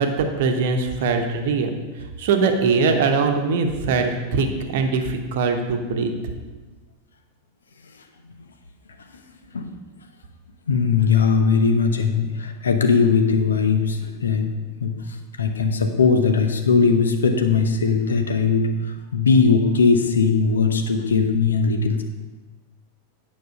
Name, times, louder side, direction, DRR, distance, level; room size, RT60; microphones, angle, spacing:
voice 1, 0.0-6.1, right 4 dB, 55° right, 5 dB, 1.0 m, -22 dB
voice 2, 10.7-14.5 14.8-18.7 19.1-22.0, left 5 dB, 70° left, 6 dB, 0.8 m, -19 dB
9.4 x 5.3 x 5.3 m, 1.3 s
figure-of-eight pair, 90°, 0 cm